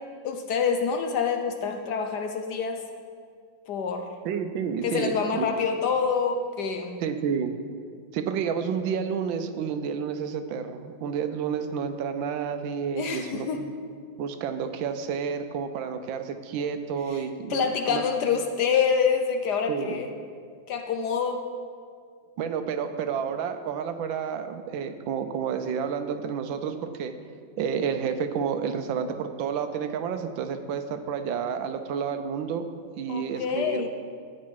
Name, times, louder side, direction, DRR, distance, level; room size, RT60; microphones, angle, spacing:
voice 1, 0.2-2.8 3.7-4.1 4.8-7.0 13.0-13.6 17.5-20.1 20.7-21.5 33.1-33.9, left 6 dB, 65° left, 5 dB, 1.2 m, -26 dB
voice 2, 4.2-5.5 7.0-7.6 8.1-13.7 14.2-18.0 19.7-20.0 22.4-27.1 27.6-32.7 33.0-33.9, right 7 dB, 80° right, 9 dB, 1.4 m, -30 dB
12.0 x 8.3 x 4.7 m, 2.1 s
omnidirectional pair, 2.1 m